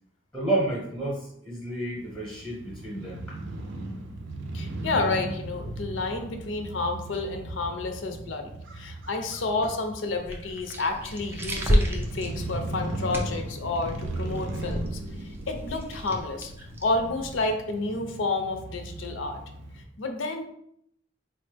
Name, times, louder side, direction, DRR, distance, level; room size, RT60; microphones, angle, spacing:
voice 1, 0.3-3.4, right 1 dB, 5° left, -4 dB, 0.7 m, -30 dB
Crow / Motorcycle, 2.0-19.8, right 2 dB, 75° right, 0.5 m, -37 dB
voice 2, 4.5-15.0 15.5-16.5 16.8-19.4 20.0-20.4, left 3 dB, 80° left, 5 dB, 0.5 m, -30 dB
sound 1, 10.2-17.5, equal, 10° right, 0.3 m, -32 dB
4.2 x 2.0 x 3.2 m, 0.72 s
head